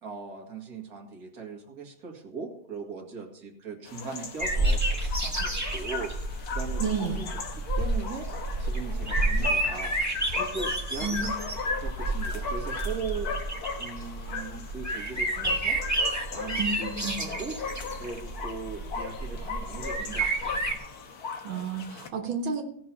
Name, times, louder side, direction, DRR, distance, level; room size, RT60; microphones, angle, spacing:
voice 1, 0.0-6.1 6.5-7.2 7.5-8.3 8.6-10.0 10.4-11.4 11.8-13.5 13.8-15.8 16.3-17.6 18.0-20.6, right 5 dB, 50° right, 1 dB, 2.5 m, -39 dB
sound 1, 3.9-22.1, left 4 dB, 55° left, 1.6 m, -37 dB
sound 2, 4.4-20.8, right 2 dB, 10° right, 1.6 m, -30 dB
voice 2, 6.8-7.2 11.0-11.2 16.6-17.2 21.4-22.6, right 5 dB, 90° right, 2 dB, 2.2 m, -31 dB
17.5 x 6.2 x 5.6 m, 0.69 s
omnidirectional pair, 2.1 m